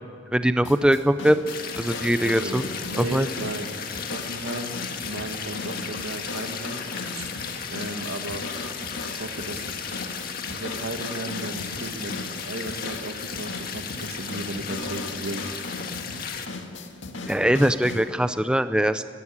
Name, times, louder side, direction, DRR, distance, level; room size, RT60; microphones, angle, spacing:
voice 1, 0.3-1.4 1.8-2.6 3.0-3.3 17.2-19.0, equal, 5° right, 11 dB, 0.5 m, -21 dB
sound 1, 0.6-18.1, left 3 dB, 75° left, 1.9 m, -38 dB
sound 2, 1.5-16.4, left 6 dB, 50° left, 1.7 m, -35 dB
voice 2, 2.2-3.7 4.1-6.8 7.1-7.3 7.7-8.5 9.1-9.7 10.5-15.5, right 2 dB, 90° right, 6 dB, 2.0 m, -35 dB
20.5 x 15.5 x 8.8 m, 2.2 s
head